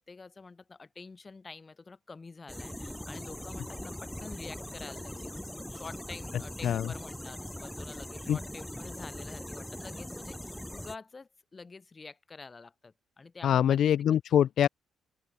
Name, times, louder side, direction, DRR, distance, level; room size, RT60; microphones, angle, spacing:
voice 1, 0.0-5.3 5.7-13.8 14.1-14.2, left 4 dB, 30° left, 6.1 m, -48 dB
sound 1, 2.5-11.0, left 1 dB, 5° left, 2.3 m, -41 dB
voice 2, 13.4-14.7, left 10 dB, 65° left, 0.3 m, -24 dB
open air
cardioid pair, 90°, 0 cm